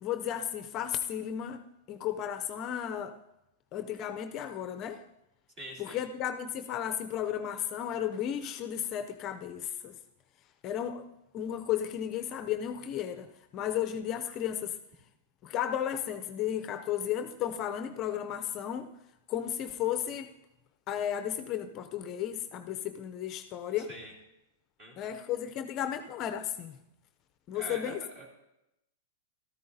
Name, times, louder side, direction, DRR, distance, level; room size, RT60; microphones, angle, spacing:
voice 1, 0.0-1.6 1.9-3.2 3.7-5.0 5.8-10.0 10.6-11.1 11.3-13.3 13.5-14.8 15.4-18.9 19.3-20.3 20.9-23.9 25.0-26.8 27.5-28.0, left 10 dB, 30° left, 8 dB, 0.5 m, -34 dB
voice 2, 5.6-6.0 23.8-24.1 24.8-25.1 27.5-28.3, right 1 dB, 35° right, 0 dB, 2.7 m, -44 dB
13.5 x 13.0 x 2.7 m, 0.88 s
supercardioid pair, 150°, 0 cm